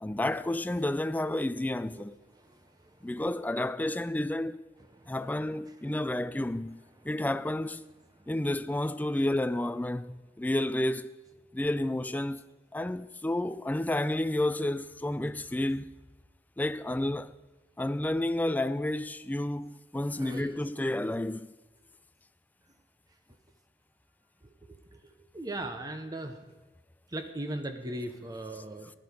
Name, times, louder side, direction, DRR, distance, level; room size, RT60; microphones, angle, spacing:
voice 1, 0.0-2.2 3.0-4.6 5.1-7.8 8.3-11.1 11.5-12.4 12.7-15.9 16.6-17.3 17.8-21.5, left 1 dB, 10° left, 0.3 m, -31 dB
voice 2, 20.2-20.5 24.7-25.0 25.3-26.4 27.1-28.9, right 1 dB, 20° right, 0.8 m, -38 dB
15.5 x 11.5 x 5.2 m
head